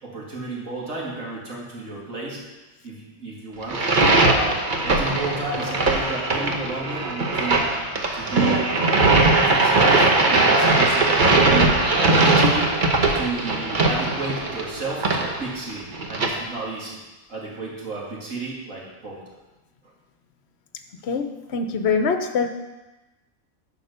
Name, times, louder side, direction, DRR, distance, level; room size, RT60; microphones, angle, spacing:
voice 1, 0.0-2.4 2.8-3.8 4.2-7.7 8.1-11.8 12.1-12.8 13.1-17.0 17.3-19.2, right 3 dB, 75° right, -4 dB, 2.5 m, -31 dB
sound 1, 3.6-16.3, right 2 dB, 40° right, 1.1 m, -20 dB
voice 2, 21.0-22.5, left 5 dB, 55° left, 7 dB, 1.0 m, -23 dB
11.0 x 5.0 x 6.7 m, 1.1 s
omnidirectional pair, 1.4 m